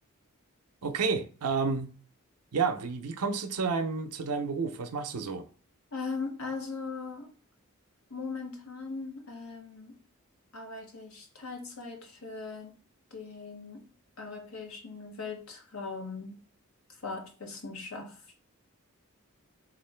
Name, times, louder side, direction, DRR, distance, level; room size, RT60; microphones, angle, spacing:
voice 1, 0.8-1.9 2.5-5.5, right 5 dB, 90° right, 0.5 m, -30 dB
voice 2, 5.9-7.3 8.1-10.0 10.5-12.7 13.1-13.8 14.2-16.4 16.9-18.2, left 4 dB, 75° left, 0.9 m, -39 dB
3.7 x 2.4 x 3.2 m
head